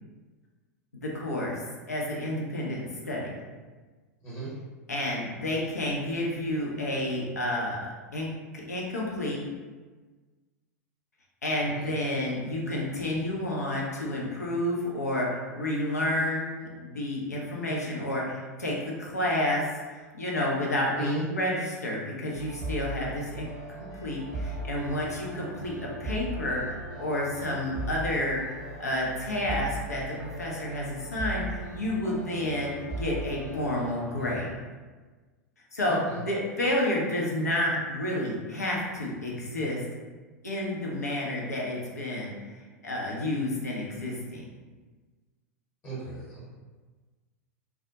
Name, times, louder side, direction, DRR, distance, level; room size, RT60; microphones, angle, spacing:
voice 1, 0.9-1.6 1.9-3.3 4.9-7.8 8.1-8.3 8.5-9.4 11.4-19.7 19.9-23.5 24.0-34.5 35.7-39.8 40.4-42.3 42.8-44.4, left 1 dB, 75° left, -3 dB, 0.5 m, -30 dB
sound 1, 22.4-34.5, right 2 dB, 5° right, 0.7 m, -38 dB
voice 2, 35.9-36.2 45.8-46.4, right 1 dB, 30° left, -8 dB, 1.0 m, -37 dB
2.2 x 2.0 x 2.8 m, 1.3 s
figure-of-eight pair, 90°, 9 cm